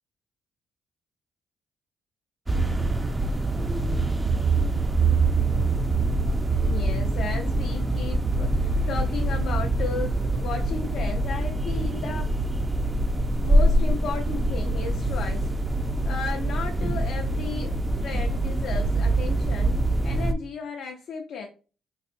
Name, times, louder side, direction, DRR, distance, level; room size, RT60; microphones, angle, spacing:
sound 1, 2.5-20.3, right 2 dB, 20° right, 0.3 m, -24 dB
voice 1, 6.6-12.4 13.4-15.5 16.1-17.7 18.0-21.5, left 6 dB, 75° left, 2 dB, 0.5 m, -34 dB
4.0 x 2.6 x 2.5 m, 0.36 s
cardioid pair, 90°, 0 cm